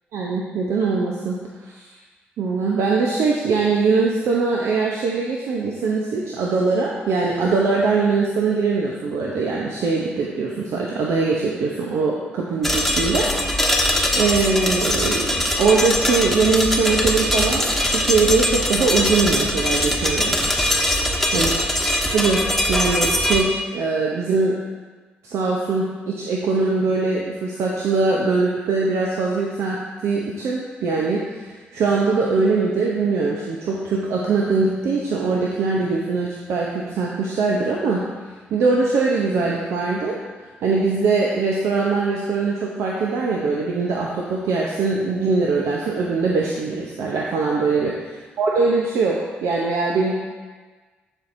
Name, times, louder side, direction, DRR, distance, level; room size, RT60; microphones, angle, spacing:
voice 1, 0.1-1.4 1.6-1.9 2.4-13.8 14.1-20.6 21.3-21.5 22.1-22.4 22.7-24.6 25.2-38.0 38.5-40.2 40.4-48.1 48.4-50.1, right 4 dB, 65° right, -2 dB, 0.7 m, -22 dB
sound 1, 12.6-23.4, left 1 dB, 5° left, 1.2 m, -21 dB
12.5 x 4.5 x 2.6 m, 1.4 s
hypercardioid pair, 40°, 5 cm